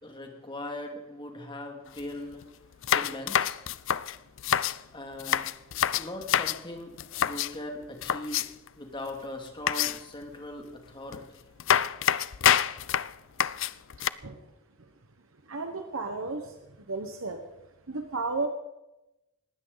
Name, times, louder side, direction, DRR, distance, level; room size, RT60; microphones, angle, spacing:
voice 1, 0.0-2.4 2.9-3.6 4.9-5.5 6.0-8.5 8.8-11.4, left 1 dB, 25° left, 2 dB, 2.6 m, -40 dB
sound 1, 1.9-2.0 2.3-2.4 2.8-4.8 5.2-6.6 7.0-7.5 8.0-8.7 9.7-10.2 11.1-11.2 11.6-14.1, left 9 dB, 60° left, 0.5 m, -27 dB
voice 2, 15.5-16.6 16.9-17.4 17.9-18.5, right 3 dB, 75° right, 5 dB, 1.3 m, -33 dB
20.0 x 16.0 x 4.1 m, 0.96 s
head